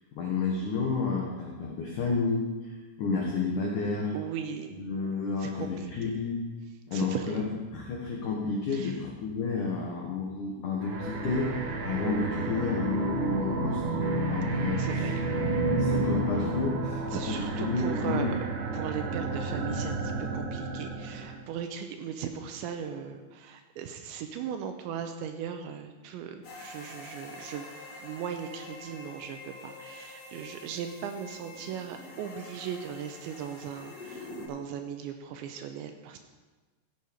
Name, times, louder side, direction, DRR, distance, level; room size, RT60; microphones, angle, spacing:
voice 1, 0.1-4.1 4.8-6.4 6.9-7.4 7.7-13.8 14.2-14.8 15.8-17.0 17.3-18.3, left 4 dB, 80° left, -1 dB, 1.8 m, -31 dB
voice 2, 4.1-4.9 5.4-6.1 6.9-7.4 8.7-9.0 14.8-15.2 17.1-18.4 18.7-27.7 28.0-36.2, right 8 dB, 85° right, 6 dB, 2.8 m, -38 dB
sound 1, 10.8-21.4, right 2 dB, 65° right, 2.0 m, -31 dB
sound 2, 26.4-34.5, left 2 dB, 50° left, 3.7 m, -46 dB
15.5 x 8.1 x 5.2 m, 1.3 s
omnidirectional pair, 5.7 m